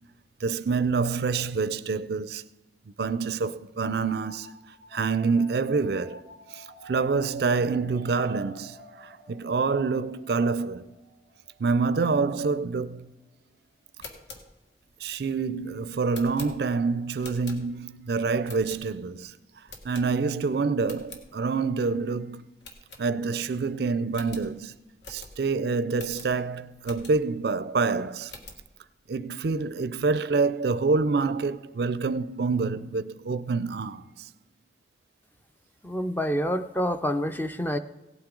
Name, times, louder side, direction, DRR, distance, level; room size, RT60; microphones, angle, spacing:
voice 1, 0.4-2.4 3.0-4.5 4.9-6.2 6.5-10.9 11.6-13.1 15.0-19.3 19.8-22.4 23.0-24.7 25.1-28.3 29.1-34.3, right 4 dB, 60° right, 0.4 m, -27 dB
sound 1, 3.9-13.3, left 2 dB, 30° left, 3.3 m, -51 dB
sound 2, 13.8-18.0 18.4-19.2 19.7-20.5 20.8-21.3 21.7-21.8 22.0-22.2 22.6-23.5 23.8-23.9 24.1-27.4 27.9-28.7, left 3 dB, 75° left, 1.6 m, -46 dB
voice 2, 35.8-37.8, equal, 10° left, 0.4 m, -27 dB
17.0 x 8.9 x 3.8 m
head